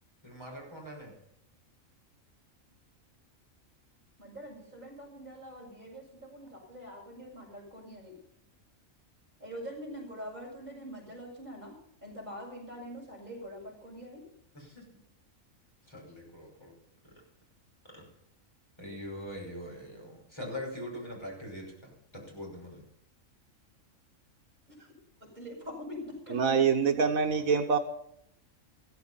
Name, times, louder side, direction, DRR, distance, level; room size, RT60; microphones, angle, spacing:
voice 1, 0.2-1.1 14.5-14.8 15.8-16.7 17.9-18.0 18.8-22.8, left 1 dB, 20° left, -2 dB, 5.9 m, -42 dB
voice 2, 4.2-8.2 9.4-11.8 12.0-14.2 24.8-24.9 25.3-26.7, equal, 35° right, -2 dB, 6.6 m, -44 dB
voice 3, 26.3-27.8, right 6 dB, 85° right, 6 dB, 1.6 m, -25 dB
15.0 x 14.0 x 5.6 m, 0.72 s
omnidirectional pair, 1.4 m